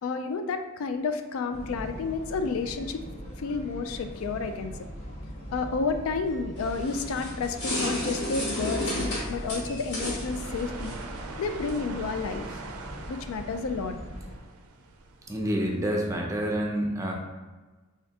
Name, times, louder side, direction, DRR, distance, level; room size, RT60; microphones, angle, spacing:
voice 1, 0.0-3.0 3.4-4.7 5.5-10.9 11.4-12.6 13.1-14.0, left 4 dB, 80° left, 7 dB, 0.3 m, -31 dB
sound 1, 1.5-14.4, equal, 35° left, 1.0 m, -40 dB
sound 2, 6.6-11.8, left 1 dB, 55° left, 1.2 m, -33 dB
sound 3, 10.2-16.2, right 4 dB, 90° right, 0.4 m, -43 dB
voice 2, 15.3-17.1, equal, 15° right, 0 dB, 0.5 m, -28 dB
3.7 x 3.3 x 2.7 m, 1.3 s
head